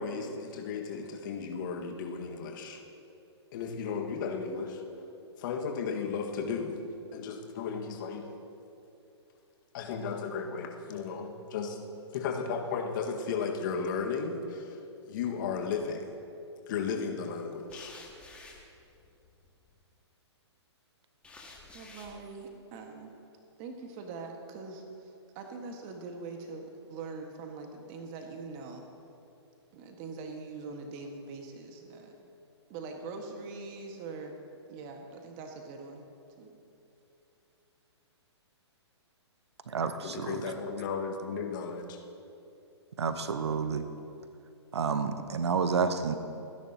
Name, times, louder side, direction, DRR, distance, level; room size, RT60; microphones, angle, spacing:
voice 1, 0.0-2.8 3.5-4.8 5.4-6.8 7.1-8.3 9.7-11.8 12.1-14.8 15.1-16.0 16.7-17.9 40.0-42.0, left 5 dB, 45° left, 2 dB, 1.6 m, -34 dB
sound 1, 15.5-16.0 17.7-19.7 21.2-22.2, left 3 dB, 5° left, 1.8 m, -52 dB
voice 2, 21.7-23.1 23.6-28.9 29.7-32.1 32.7-34.4 34.7-36.1 36.4-36.5, right 4 dB, 35° right, 3 dB, 1.6 m, -43 dB
voice 3, 39.7-40.4 43.0-43.9 44.7-46.2, right 5 dB, 70° right, 10 dB, 0.9 m, -30 dB
29.5 x 10.5 x 2.9 m, 2.7 s
figure-of-eight pair, 125°, 15 cm